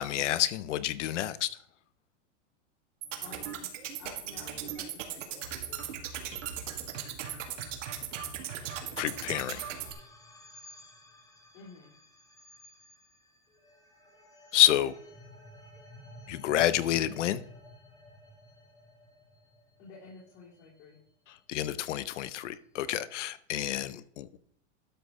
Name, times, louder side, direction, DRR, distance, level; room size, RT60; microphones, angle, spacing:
voice 1, 0.0-1.5 9.0-9.7 14.5-14.9 16.3-17.4 21.5-24.4, left 13 dB, 80° left, 15 dB, 0.9 m, -28 dB
sound 1, 3.0-9.9, right 9 dB, 90° right, 2.0 m, -38 dB
voice 2, 3.2-3.7 4.0-5.9 11.5-11.9 19.8-21.0, left 4 dB, 60° left, -6 dB, 3.5 m, -51 dB
sound 2, 9.0-21.4, left 1 dB, 10° left, 1.0 m, -54 dB
12.5 x 6.3 x 3.7 m, 0.67 s
supercardioid pair, 160°, 36 cm